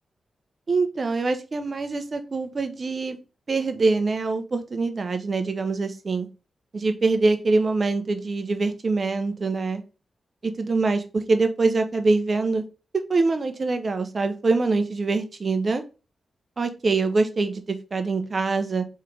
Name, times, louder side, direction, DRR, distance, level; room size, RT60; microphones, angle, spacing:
voice 1, 0.7-3.2 3.5-6.3 6.7-9.8 10.4-12.6 13.1-15.8 16.6-18.8, right 3 dB, 50° right, 0.7 m, -24 dB
3.7 x 3.3 x 3.3 m
supercardioid pair, 50°, 0 cm